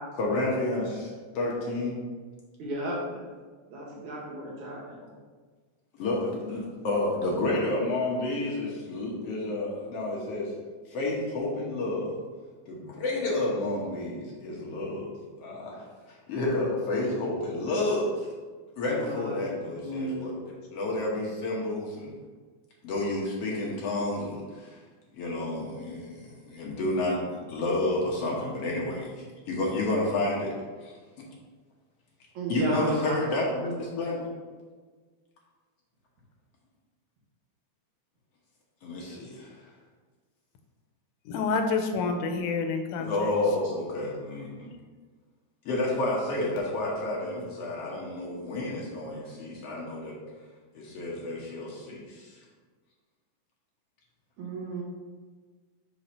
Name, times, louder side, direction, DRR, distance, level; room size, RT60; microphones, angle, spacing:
voice 1, 0.2-1.9 6.0-10.5 10.9-12.1 12.7-15.1 15.4-18.3 18.8-22.1 22.8-24.8 25.1-30.5 30.8-30.9 32.5-34.3 38.8-39.6 43.0-44.7 45.7-50.2 50.7-52.4, left 2 dB, 60° left, -3 dB, 1.8 m, -30 dB
voice 2, 2.6-3.2 3.7-4.8 18.8-20.3 32.3-33.2 54.4-54.8, right 1 dB, 70° right, -3 dB, 2.7 m, -33 dB
voice 3, 41.3-43.3, left 4 dB, 90° left, 5 dB, 2.2 m, -28 dB
5.8 x 4.0 x 5.3 m, 1.5 s
omnidirectional pair, 3.5 m